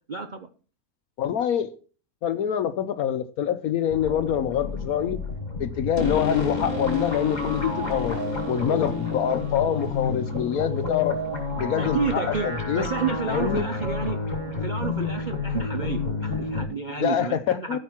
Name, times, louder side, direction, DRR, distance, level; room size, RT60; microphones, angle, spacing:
voice 1, 0.1-0.5 11.8-14.2 14.6-17.8, right 5 dB, 45° right, 0.6 m, -30 dB
voice 2, 1.2-1.7 2.2-5.2 5.6-8.2 8.5-11.2 11.6-12.9 13.3-13.7 17.0-17.8, left 9 dB, 75° left, 1.1 m, -25 dB
sound 1, 3.9-16.7, left 3 dB, 25° left, 3.0 m, -29 dB
13.5 x 5.5 x 5.8 m
omnidirectional pair, 1.6 m